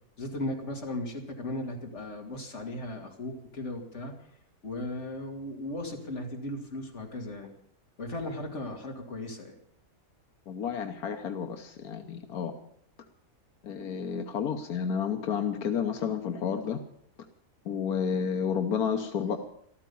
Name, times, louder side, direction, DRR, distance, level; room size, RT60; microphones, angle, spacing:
voice 1, 0.2-4.1 4.6-7.5 8.0-9.6, left 1 dB, 50° left, 1 dB, 2.8 m, -36 dB
voice 2, 10.5-12.5 13.6-16.8 17.6-19.4, left 7 dB, 85° left, 6 dB, 1.5 m, -31 dB
14.0 x 13.5 x 7.0 m, 0.67 s
omnidirectional pair, 1.5 m